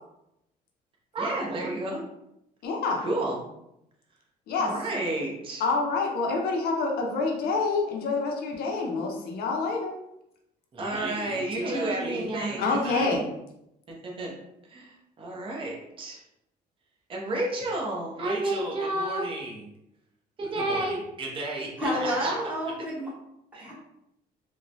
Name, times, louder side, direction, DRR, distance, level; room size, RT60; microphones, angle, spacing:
voice 1, 1.1-2.0 3.0-3.4 4.6-5.6 10.7-13.1 13.9-14.3 14.7-14.9 15.2-16.2 17.1-19.7 20.4-22.3 23.5-23.7, right 2 dB, 30° right, -2 dB, 0.7 m, -31 dB
voice 2, 2.6-3.1 4.5-4.7 5.6-9.9 12.6-13.2, left 3 dB, 65° left, 1 dB, 0.6 m, -27 dB
voice 3, 21.8-23.1 23.6-23.7, equal, 10° right, -6 dB, 1.0 m, -29 dB
3.0 x 2.1 x 2.5 m, 0.82 s
cardioid pair, 110°, 17 cm